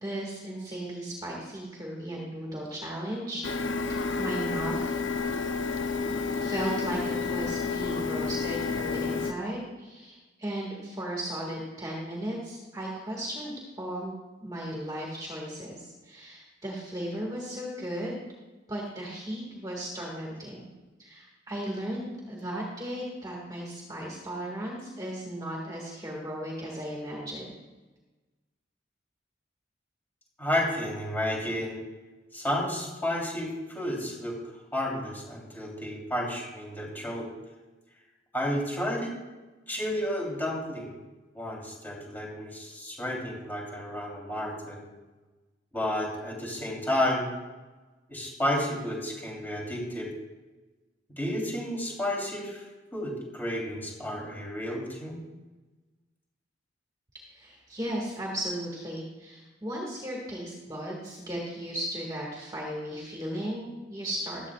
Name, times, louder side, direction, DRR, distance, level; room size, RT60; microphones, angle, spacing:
voice 1, 0.0-3.4 3.9-4.9 6.3-14.1 14.4-18.2 18.7-20.7 21.0-27.5 57.3-64.5, right 1 dB, 20° right, -3 dB, 2.0 m, -36 dB
Printer, 3.4-9.3, left 4 dB, 85° left, 0.8 m, -30 dB
voice 2, 30.4-31.8 32.3-34.4 34.7-37.3 38.3-39.1 39.7-41.0 41.3-44.9 45.7-47.3 48.1-50.1 51.2-52.7 52.9-55.2, left 1 dB, 10° left, -3 dB, 3.5 m, -31 dB
15.5 x 12.5 x 2.5 m, 1.2 s
head